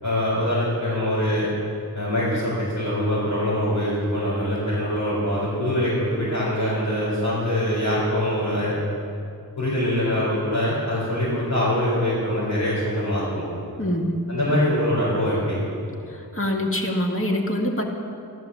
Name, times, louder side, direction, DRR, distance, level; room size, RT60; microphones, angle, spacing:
voice 1, 0.0-1.5 1.9-8.7 9.6-13.5 14.3-15.6, left 1 dB, 80° left, -10 dB, 5.0 m, -23 dB
voice 2, 13.8-14.3 16.1-17.8, left 1 dB, 35° left, 0 dB, 2.0 m, -25 dB
14.0 x 13.5 x 7.2 m, 2.5 s
wide cardioid pair, 50°, 38 cm